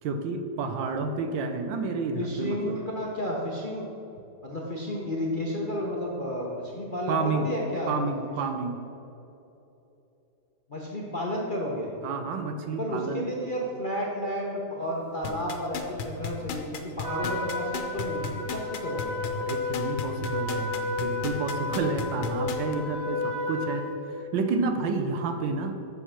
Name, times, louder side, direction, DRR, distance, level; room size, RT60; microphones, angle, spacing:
voice 1, 0.0-2.7 7.1-7.5 7.9-8.8 12.0-13.2 19.4-25.7, right 4 dB, 75° right, 6 dB, 1.4 m, -30 dB
voice 2, 2.1-3.9 4.4-7.9 10.7-11.9 12.8-19.2, equal, 40° left, -3 dB, 0.8 m, -32 dB
sound 1, 15.2-22.7 23.2-23.3, left 7 dB, 90° left, 1.5 m, -34 dB
Trumpet, 17.0-23.9, left 3 dB, 5° right, 1.3 m, -32 dB
7.5 x 6.7 x 5.7 m, 2.9 s
omnidirectional pair, 2.1 m